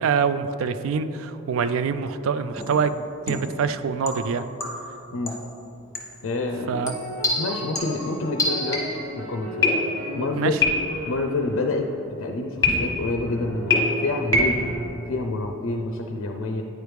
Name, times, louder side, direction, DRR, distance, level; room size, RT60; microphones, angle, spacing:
voice 1, 0.0-4.4 6.7-7.0 10.4-10.6, right 6 dB, 70° right, 12 dB, 0.3 m, -25 dB
sound 1, 2.6-2.8 3.3-3.6 4.1-5.0 5.3-5.5 5.9-6.2 6.9-9.1 9.6-10.2 10.6-11.2 12.6-13.2 13.7-14.7, left 2 dB, 15° left, 0.8 m, -25 dB
voice 2, 6.2-6.8 7.4-10.5 11.1-11.9 12.2-14.6 15.1-16.6, left 2 dB, 70° left, 3 dB, 0.4 m, -28 dB
sound 2, 6.6-12.1 13.2-14.2 14.6-14.9, equal, 90° right, 1.3 m, -36 dB
9.1 x 3.1 x 5.0 m, 2.8 s
head